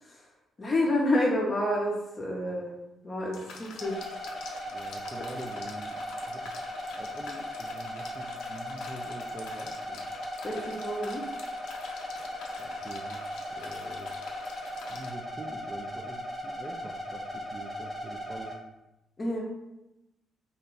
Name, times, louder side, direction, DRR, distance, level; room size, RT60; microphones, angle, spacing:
voice 1, 0.6-2.7 3.0-4.1 10.4-11.2 19.2-19.4, left 1 dB, 30° left, -3 dB, 0.6 m, -29 dB
sound 1, 3.3-15.1, left 4 dB, 80° left, 0.4 m, -46 dB
sound 2, 3.8-18.5, left 1 dB, 10° right, 0.8 m, -38 dB
voice 2, 4.7-6.6 7.0-10.1 12.6-14.1 14.9-18.6, right 2 dB, 25° right, 0 dB, 0.4 m, -45 dB
2.7 x 2.2 x 3.8 m, 0.95 s
cardioid pair, 90°, 0 cm